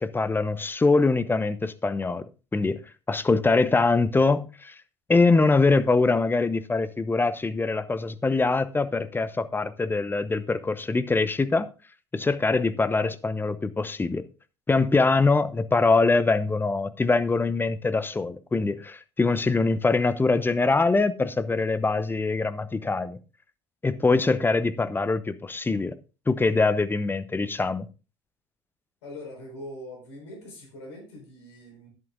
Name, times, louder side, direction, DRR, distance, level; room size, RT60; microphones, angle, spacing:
voice 1, 0.0-2.2 2.5-2.8 3.1-4.7 5.1-11.7 12.1-14.2 14.7-23.2 23.8-25.9 26.3-27.9, left 3 dB, 15° left, 0.8 m, -23 dB
voice 2, 29.0-31.9, left 1 dB, 70° left, 5.0 m, -42 dB
12.0 x 10.5 x 2.5 m
figure-of-eight pair, 65°, 15 cm